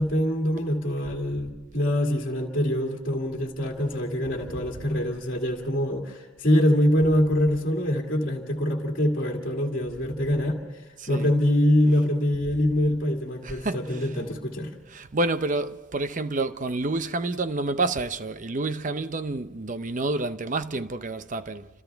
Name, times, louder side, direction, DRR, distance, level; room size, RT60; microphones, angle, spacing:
voice 1, 0.0-14.7, left 1 dB, 40° left, 2.2 m, -24 dB
voice 2, 11.0-11.3 13.4-14.1 14.9-21.7, right 2 dB, 35° right, 0.6 m, -29 dB
29.0 x 27.0 x 3.5 m
head